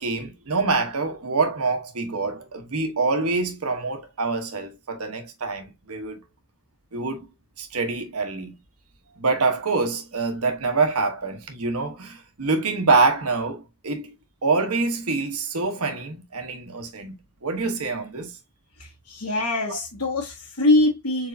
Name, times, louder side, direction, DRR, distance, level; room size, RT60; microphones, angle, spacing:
voice 1, 0.0-6.2 6.9-7.3 7.6-8.5 9.2-14.1 14.4-17.1 17.4-18.3 19.7-19.8, right 3 dB, 85° right, 1.1 m, -25 dB
voice 2, 19.1-21.3, left 2 dB, 80° left, 1.3 m, -23 dB
4.6 x 4.2 x 2.6 m
head